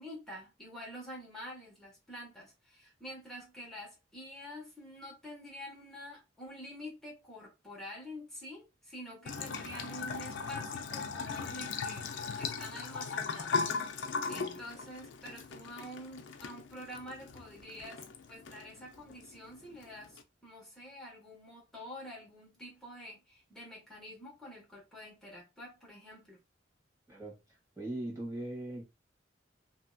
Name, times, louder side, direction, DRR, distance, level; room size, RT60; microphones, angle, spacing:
voice 1, 0.0-26.4, equal, 5° left, 1.3 m, -47 dB
Bathtub (filling or washing) / Trickle dribble, 9.3-20.2, left 4 dB, 70° left, 0.4 m, -39 dB
voice 2, 14.3-14.6 27.1-27.4 27.8-28.8, right 1 dB, 15° right, 1.3 m, -40 dB
2.8 x 2.7 x 2.3 m
head